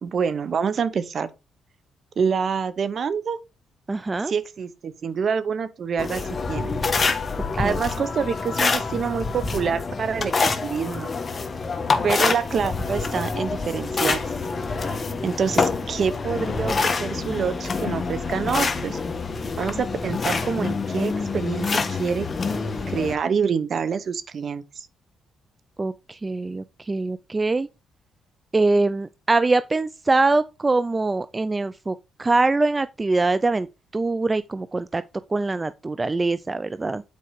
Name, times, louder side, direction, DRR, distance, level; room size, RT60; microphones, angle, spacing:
voice 1, 0.0-1.3 2.2-3.4 4.3-6.2 6.5-6.8 7.6-11.1 12.0-14.2 15.2-19.0 19.6-22.3 22.9-24.9, right 6 dB, 50° right, 1.0 m, -26 dB
voice 2, 3.9-4.3 7.6-7.8 15.5-15.6 25.8-27.7 28.5-33.7 33.9-35.0 35.3-37.0, right 3 dB, 25° right, 0.4 m, -23 dB
sound 1, 6.0-23.1, left 4 dB, 35° left, 1.3 m, -26 dB
8.5 x 4.7 x 4.7 m
cardioid pair, 90°, 0 cm